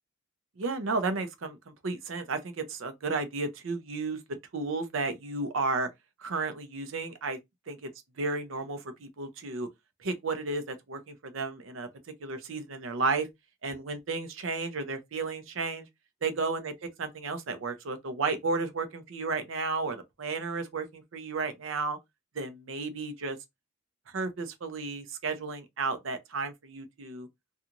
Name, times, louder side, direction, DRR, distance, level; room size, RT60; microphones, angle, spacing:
voice 1, 0.6-1.6 1.8-4.2 4.5-5.9 6.2-7.4 7.7-7.9 8.2-9.7 10.0-11.9 12.2-13.3 13.6-15.9 16.2-22.0 22.4-23.4 24.1-27.3, right 3 dB, 80° right, 0.6 m, -33 dB
2.9 x 2.3 x 2.5 m
head